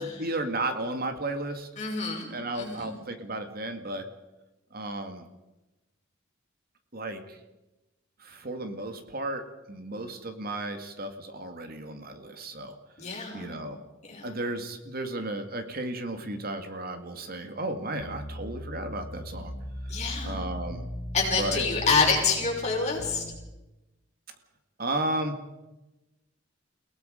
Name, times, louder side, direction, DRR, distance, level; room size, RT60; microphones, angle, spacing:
voice 1, 0.0-1.7 2.3-4.1 4.7-5.3 6.9-7.4 8.2-12.8 13.3-13.8 14.2-19.5 20.2-20.9 21.3-21.7 24.8-25.4, right 2 dB, 50° right, 7 dB, 2.1 m, -34 dB
voice 2, 1.8-2.3 2.5-3.0 13.0-13.6 14.1-14.3 19.9-20.4 21.1-23.2, left 4 dB, 35° left, -1 dB, 6.3 m, -27 dB
sound 1, 18.0-23.3, equal, 60° left, 3.4 m, -38 dB
30.0 x 18.0 x 5.2 m, 1.0 s
head